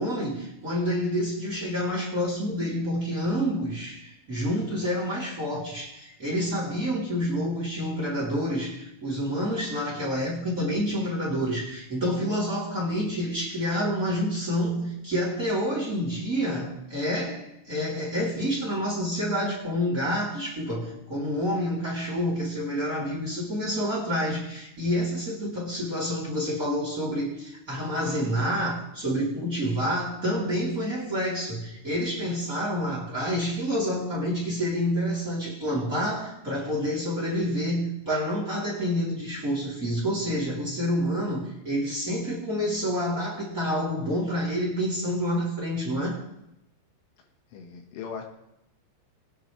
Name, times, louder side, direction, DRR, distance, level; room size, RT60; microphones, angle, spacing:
voice 1, 0.0-46.2, equal, 20° right, -5 dB, 3.0 m, -28 dB
voice 2, 47.5-48.2, left 6 dB, 80° left, 2 dB, 4.0 m, -38 dB
22.0 x 9.7 x 3.3 m, 0.83 s
omnidirectional pair, 5.6 m